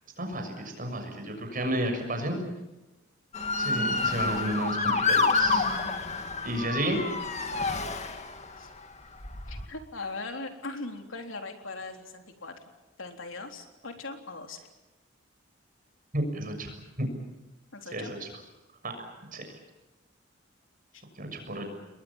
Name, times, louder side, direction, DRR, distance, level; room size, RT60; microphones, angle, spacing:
voice 1, 0.2-2.4 3.6-5.6 6.4-7.0 16.1-16.7 17.0-17.1 17.9-18.3 18.8-18.9 19.3-19.4 21.2-21.7, right 1 dB, 45° right, 5 dB, 6.7 m, -31 dB
Motor vehicle (road) / Siren, 3.3-8.6 9.2-9.7, left 4 dB, 35° left, 2.3 m, -28 dB
voice 2, 9.5-12.5 13.0-14.7 17.7-18.1 20.9-21.0, left 3 dB, 80° left, 4 dB, 3.7 m, -39 dB
30.0 x 21.5 x 7.3 m, 1.1 s
head